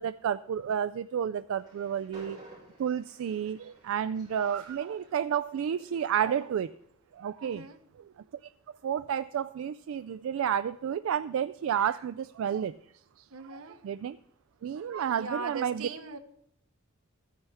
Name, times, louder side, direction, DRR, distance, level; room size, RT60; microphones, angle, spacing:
voice 1, 0.0-2.4 2.8-6.7 7.1-7.7 8.8-12.7 13.5-14.2 14.6-15.9, right 8 dB, 70° right, 13 dB, 0.3 m, -31 dB
Train, 1.5-6.8, right 1 dB, 20° right, 5.3 m, -55 dB
voice 2, 7.4-7.8 13.3-13.8 15.2-16.2, right 4 dB, 90° right, 9 dB, 1.0 m, -39 dB
14.0 x 9.7 x 3.5 m, 0.72 s
head